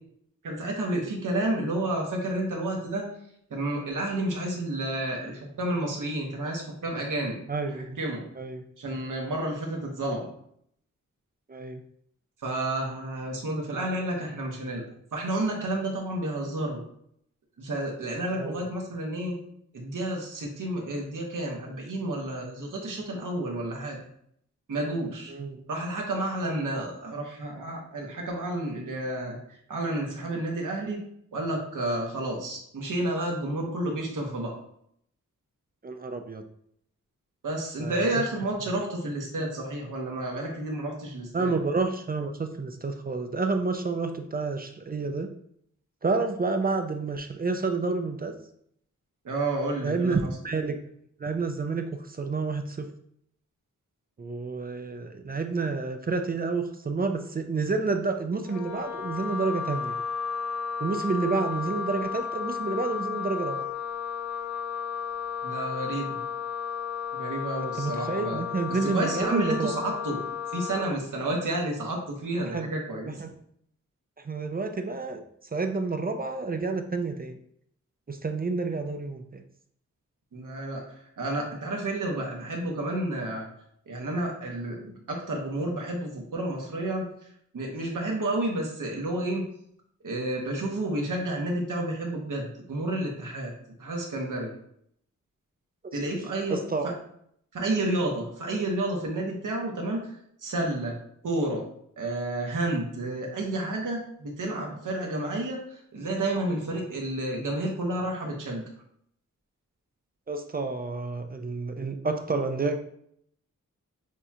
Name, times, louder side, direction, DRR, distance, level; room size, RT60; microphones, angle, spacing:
voice 1, 0.4-3.1 3.5-7.4 7.7-8.2 8.8-10.3 12.4-14.8 15.1-16.8 17.6-19.3 19.7-24.0 24.7-25.3 25.7-31.0 31.3-34.6 37.4-41.5 49.2-50.2 65.4-66.2 67.1-68.4 68.8-70.2 70.5-73.2 80.3-83.5 83.9-87.1 87.5-89.4 90.0-93.5 93.8-94.5 95.9-96.6 96.8-96.9 97.5-101.0 101.2-101.7 102.0-108.6, right 1 dB, 85° right, 0 dB, 1.1 m, -30 dB
voice 2, 7.5-8.0 8.4-8.6 11.5-11.8 18.3-18.6 25.3-25.6 35.8-36.4 37.8-38.1 41.3-45.3 46.0-48.3 49.8-50.8 51.2-52.9 54.2-60.0 60.8-63.7 67.6-69.7 72.4-72.7 73.1-73.3 74.2-75.2 75.5-77.4 78.1-79.4 95.8-96.0 96.5-96.9 110.3-112.8, right 3 dB, 30° right, 6 dB, 0.4 m, -29 dB
Wind instrument woodwind instrument, 58.4-70.9, left 7 dB, 65° left, 0.6 m, -33 dB
6.5 x 2.4 x 2.8 m, 0.70 s
wide cardioid pair, 90°, 31 cm